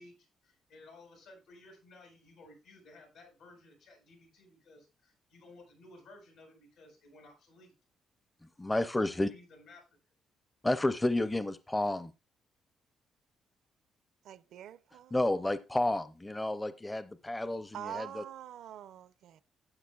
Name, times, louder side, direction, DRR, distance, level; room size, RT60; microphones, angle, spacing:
voice 1, 0.0-7.7 9.1-9.8, left 2 dB, 85° left, 7.0 m, -56 dB
voice 2, 8.6-9.3 10.6-12.1 15.1-18.2, left 1 dB, 15° left, 0.6 m, -31 dB
voice 3, 14.2-15.2 17.7-19.4, right 10 dB, 80° right, 0.6 m, -45 dB
12.5 x 9.0 x 2.4 m
cardioid pair, 90°, 0 cm